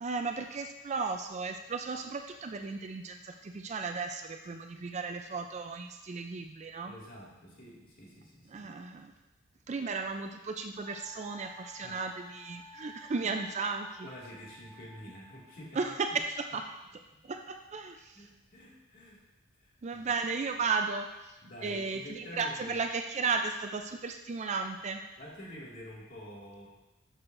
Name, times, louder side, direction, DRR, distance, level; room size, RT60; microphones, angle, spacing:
voice 1, 0.0-7.0 8.5-9.1 9.7-14.1 15.7-16.2 16.5-16.7 17.2-18.3 19.8-25.0, right 4 dB, 35° right, 6 dB, 0.4 m, -35 dB
voice 2, 6.9-8.7 11.8-12.0 14.0-15.9 18.1-19.2 19.6-20.0 21.4-22.8 25.2-26.7, equal, 40° left, -5 dB, 2.1 m, -48 dB
Wind instrument woodwind instrument, 10.9-15.7, left 1 dB, 10° left, 1.1 m, -53 dB
11.5 x 6.4 x 2.6 m, 1.0 s
head